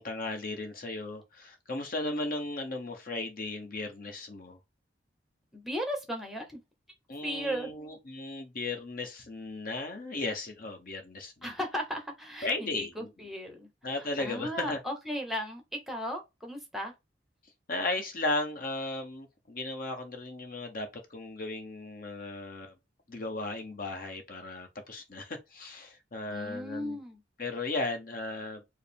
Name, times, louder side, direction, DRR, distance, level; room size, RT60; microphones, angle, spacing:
voice 1, 0.0-4.6 7.1-11.5 12.4-13.1 13.8-14.8 17.7-22.7 23.1-27.0 27.4-28.6, left 2 dB, 50° left, 0.8 m, -36 dB
voice 2, 5.5-6.6 7.2-7.7 11.4-13.7 14.0-16.9 26.3-27.2, equal, ahead, 0.9 m, -36 dB
4.7 x 2.0 x 3.4 m
head